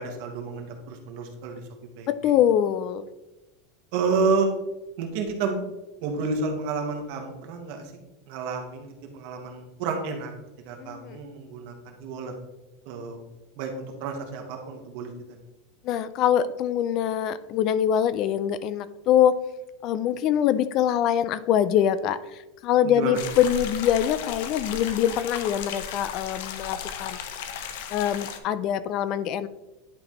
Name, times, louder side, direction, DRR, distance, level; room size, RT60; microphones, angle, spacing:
voice 1, 0.0-1.6 2.0-2.1 3.9-4.5 5.0-5.6 6.0-7.9 8.3-10.3 10.6-12.3 12.8-13.2 13.6-15.1 22.8-23.2, right 4 dB, 55° right, 3 dB, 1.4 m, -30 dB
voice 2, 2.1-3.0 10.8-11.2 15.8-19.4 19.8-27.2 27.9-29.5, left 10 dB, 40° left, 15 dB, 0.3 m, -24 dB
sound 1, 23.1-28.4, left 7 dB, 65° left, 0.7 m, -35 dB
10.5 x 4.1 x 3.1 m, 1.0 s
supercardioid pair, 155°, 0 cm